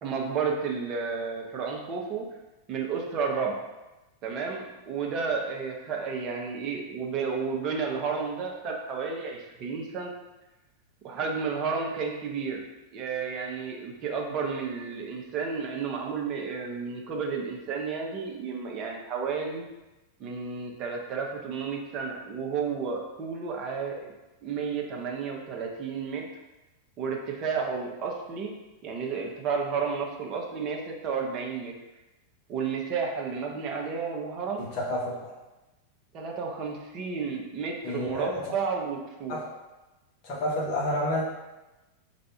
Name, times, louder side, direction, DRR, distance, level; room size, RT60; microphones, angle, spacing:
voice 1, 0.0-2.2 2.7-3.6 4.2-10.1 11.0-12.6 12.9-19.7 20.2-24.1 24.4-26.2 27.0-28.5 28.8-31.7 32.5-34.6 36.1-39.4, right 5 dB, 35° right, 0 dB, 0.7 m, -32 dB
voice 2, 34.6-35.3 37.8-38.4 39.3-39.5 40.2-41.2, left 1 dB, 40° left, -5 dB, 1.1 m, -29 dB
3.4 x 2.6 x 4.2 m, 1.1 s
figure-of-eight pair, 90°, 0 cm